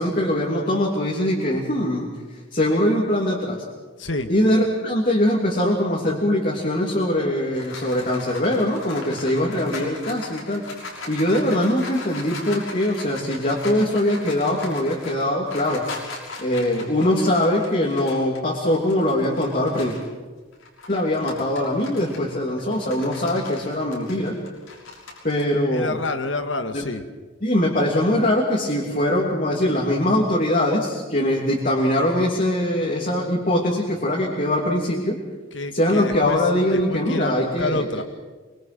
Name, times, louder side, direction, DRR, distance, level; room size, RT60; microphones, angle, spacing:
voice 1, 0.0-2.1 2.5-3.6 4.3-10.6 11.1-15.9 16.4-19.9 20.9-24.4 25.2-25.9 27.4-35.2 35.7-38.0, left 1 dB, 40° left, -3 dB, 3.0 m, -22 dB
voice 2, 4.0-4.3 25.7-27.0 35.5-38.0, left 2 dB, 65° left, 8 dB, 1.9 m, -28 dB
sound 1, 7.1-20.1 20.5-25.4, left 3 dB, 85° left, 6.5 m, -39 dB
25.0 x 24.0 x 6.2 m, 1.3 s
head